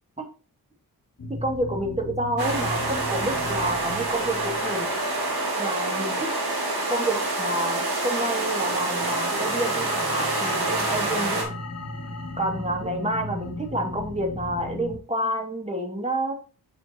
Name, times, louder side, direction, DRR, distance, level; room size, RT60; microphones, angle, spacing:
sound 1, 1.2-15.0, left 3 dB, 40° left, 1.6 m, -36 dB
voice 1, 1.4-4.9 5.6-6.3 6.9-11.5 12.4-16.3, right 1 dB, 15° right, 2 dB, 2.2 m, -29 dB
sound 2, 2.4-11.4, right 3 dB, 75° right, 3.4 m, -27 dB
7.6 x 6.7 x 2.9 m, 0.36 s
wide cardioid pair, 105°, 38 cm